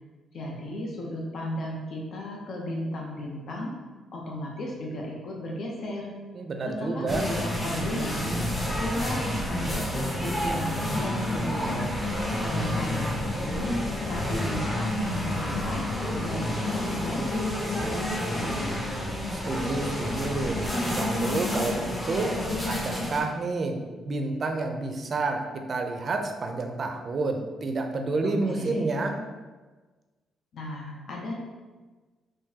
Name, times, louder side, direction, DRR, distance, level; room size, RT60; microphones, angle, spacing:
voice 1, 0.3-3.7 4.1-6.1 6.7-8.3 8.8-11.9 12.4-13.7 14.0-15.8 16.1-18.8 28.2-28.9 30.5-31.3, left 1 dB, 60° left, -1 dB, 0.6 m, -35 dB
voice 2, 6.4-7.2 19.3-20.6 20.9-22.3 22.7-29.2, right 3 dB, 45° right, 4 dB, 0.4 m, -29 dB
sound 1, 7.1-23.2, left 1 dB, 20° left, 0.8 m, -29 dB
3.6 x 2.6 x 2.8 m, 1.3 s
cardioid pair, 90°, 0 cm